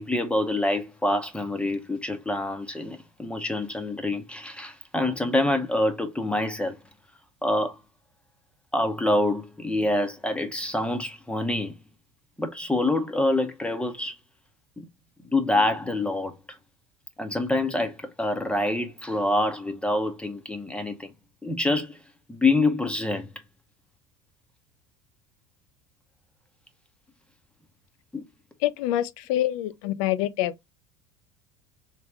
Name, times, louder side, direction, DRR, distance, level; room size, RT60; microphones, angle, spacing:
voice 1, 0.0-6.8 7.4-7.8 8.7-11.8 12.4-14.2 14.8-14.9 15.2-16.6 17.2-21.1 21.4-22.0 22.3-23.3 28.1-28.3, left 2 dB, 5° left, 0.8 m, -26 dB
voice 2, 28.6-30.5, left 13 dB, 75° left, 0.5 m, -26 dB
3.4 x 3.1 x 3.3 m
supercardioid pair, 105°, 18 cm